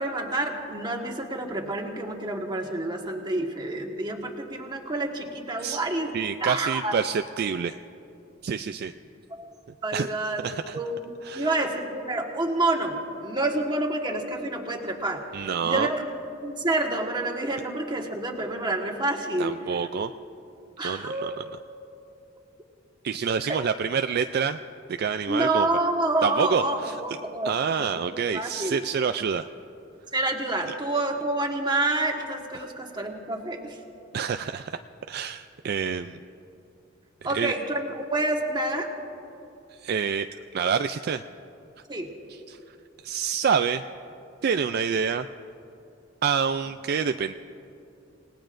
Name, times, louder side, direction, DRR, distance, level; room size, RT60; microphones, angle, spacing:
voice 1, 0.0-6.1 6.4-7.0 9.3-9.5 9.8-10.4 10.7-11.1 11.3-15.2 15.6-16.0 16.4-19.8 20.8-21.3 25.3-27.5 27.8-28.8 30.1-33.8 37.2-38.9 41.9-42.1, right 2 dB, 25° right, 1 dB, 1.5 m, -28 dB
voice 2, 6.1-7.8 8.4-8.9 9.9-10.2 10.4-10.8 11.2-11.5 15.3-15.9 19.4-20.1 20.8-21.4 23.0-24.6 24.9-25.7 26.2-27.0 27.4-29.5 30.7-30.8 34.1-34.8 35.1-36.2 37.3-37.5 39.7-40.3 40.5-41.2 42.3-42.8 43.0-43.8 44.4-45.3 46.2-47.3, right 6 dB, 50° right, 8 dB, 0.3 m, -27 dB
28.0 x 18.5 x 2.6 m, 2.7 s
head